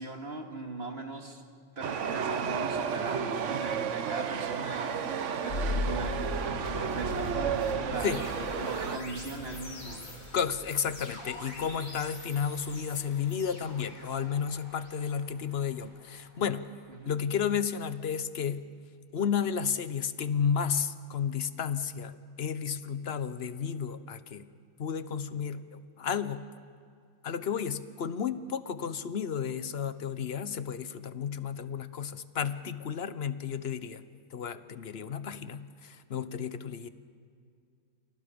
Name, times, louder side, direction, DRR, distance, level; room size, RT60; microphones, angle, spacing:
voice 1, 0.0-1.4 1.8-10.1 16.9-17.1, right 3 dB, 40° right, 3 dB, 2.4 m, -40 dB
Chatter / Subway metro underground, 1.8-9.0, right 7 dB, 60° right, 1.1 m, -32 dB
sound 1, 5.5-16.5, left 1 dB, 85° left, 5.2 m, -39 dB
voice 2, 10.3-16.7 17.1-18.7 19.1-24.5 24.8-26.4 27.2-34.0 34.3-36.9, left 7 dB, 50° left, 13 dB, 1.0 m, -32 dB
29.5 x 27.0 x 5.3 m, 2.3 s
omnidirectional pair, 1.5 m